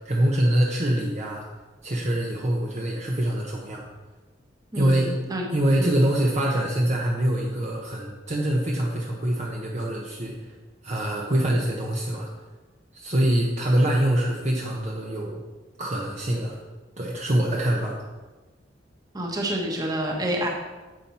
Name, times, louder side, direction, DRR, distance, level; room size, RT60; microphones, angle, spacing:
voice 1, 0.0-1.5 1.8-3.9 4.7-5.2 5.5-10.5 10.8-12.3 12.9-15.4 15.8-16.6 17.0-18.0, right 1 dB, 35° right, -2 dB, 1.1 m, -24 dB
voice 2, 4.7-5.4 5.8-6.0 19.1-20.5, right 1 dB, 20° right, 0 dB, 1.4 m, -28 dB
10.0 x 7.1 x 4.3 m, 1.2 s
head